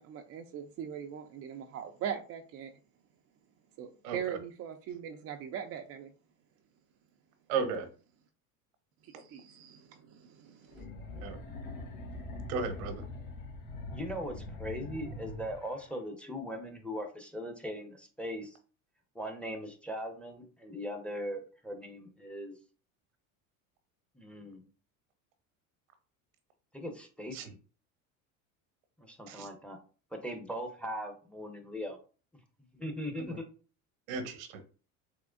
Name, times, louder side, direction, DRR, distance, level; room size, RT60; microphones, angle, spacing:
voice 1, 0.0-2.7 3.8-6.1 9.0-10.8, right 8 dB, 35° right, 4 dB, 0.4 m, -41 dB
voice 2, 7.5-7.9 11.1-11.4 12.5-13.0 27.3-27.4 29.3-29.5 34.1-34.6, right 5 dB, 80° right, 8 dB, 0.9 m, -34 dB
sound 1, 10.7-15.9, left 2 dB, 90° left, 1.3 m, -43 dB
voice 3, 13.9-18.6 19.1-22.6 24.2-24.6 26.7-27.6 29.0-29.8 30.1-32.0 32.7-33.4, equal, 5° left, 3 dB, 0.6 m, -39 dB
3.5 x 3.0 x 2.5 m, 0.37 s
hypercardioid pair, 85°, 41 cm